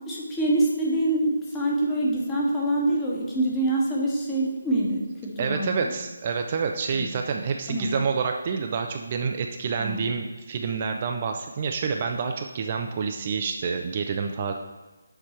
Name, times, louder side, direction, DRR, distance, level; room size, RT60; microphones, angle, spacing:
voice 1, 0.0-5.9 7.0-7.1 7.7-7.9 9.8-10.0, right 1 dB, 10° left, -4 dB, 1.3 m, -25 dB
voice 2, 5.4-14.5, right 5 dB, 35° right, 4 dB, 0.4 m, -28 dB
6.8 x 4.6 x 4.4 m, 1.2 s
figure-of-eight pair, 150°, 0 cm